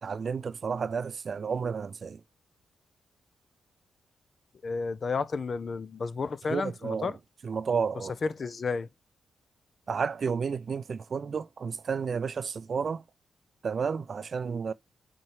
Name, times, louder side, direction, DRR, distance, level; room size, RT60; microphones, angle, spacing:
voice 1, 0.0-2.2 6.5-7.1 7.4-8.1 9.9-13.0 13.6-14.7, right 6 dB, 55° right, 0.4 m, -31 dB
voice 2, 4.6-7.2 8.2-8.9, left 4 dB, 50° left, 0.6 m, -32 dB
6.1 x 4.4 x 4.5 m
supercardioid pair, 50°, 0 cm